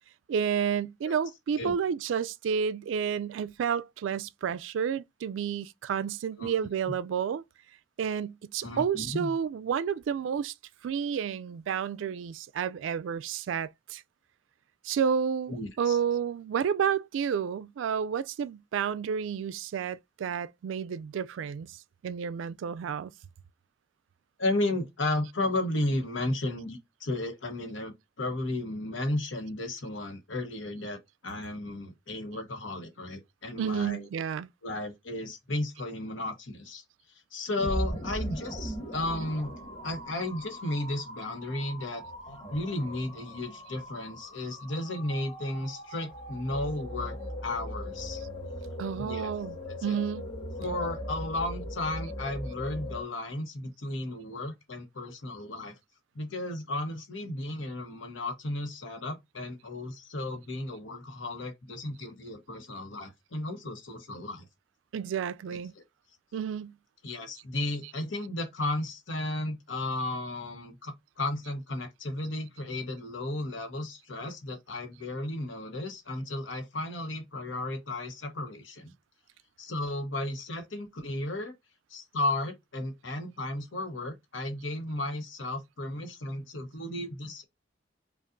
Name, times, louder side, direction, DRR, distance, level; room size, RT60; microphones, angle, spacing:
voice 1, 0.3-7.4 8.0-10.5 10.8-14.0 14.8-21.8 22.0-23.1 33.6-34.5 48.8-49.6 49.8-50.3 64.9-65.7 66.3-66.8, right 7 dB, 80° right, 0.3 m, -30 dB
voice 2, 8.6-9.3 15.5-16.0 24.4-34.1 34.6-36.8 37.3-39.5 39.8-42.0 42.5-47.1 47.4-48.2 49.0-49.3 49.7-50.0 50.6-55.8 56.1-64.5 65.8-65.9 67.0-78.9 79.6-81.5 81.9-87.5, left 2 dB, 90° left, 1.1 m, -34 dB
sound 1, 37.6-53.0, equal, 30° left, 2.0 m, -39 dB
5.2 x 2.5 x 2.5 m
head